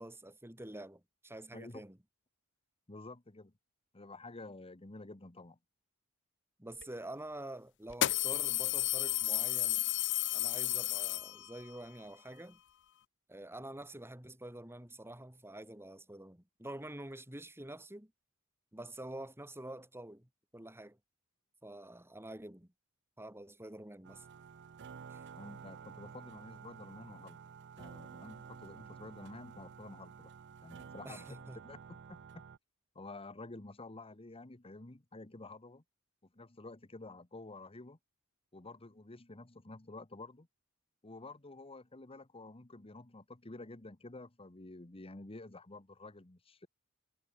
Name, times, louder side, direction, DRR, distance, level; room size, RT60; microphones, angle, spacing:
voice 1, 0.0-2.0 6.6-9.9 10.3-12.6 13.3-18.1 18.7-21.0 21.6-22.7 23.2-24.2 25.1-25.2 31.0-31.6, right 1 dB, 10° right, 3.1 m, -47 dB
voice 2, 1.5-1.8 2.9-3.5 3.9-5.6 25.3-27.4 27.8-30.3 30.6-31.3 31.6-31.8 32.1-32.4 32.9-35.8 36.3-38.0 38.5-40.5 41.0-46.7, left 2 dB, 25° left, 1.2 m, -50 dB
sound 1, 6.8-6.9 7.9-11.7, left 16 dB, 55° left, 0.5 m, -32 dB
sound 2, 24.0-32.6, right 6 dB, 55° right, 0.5 m, -51 dB
head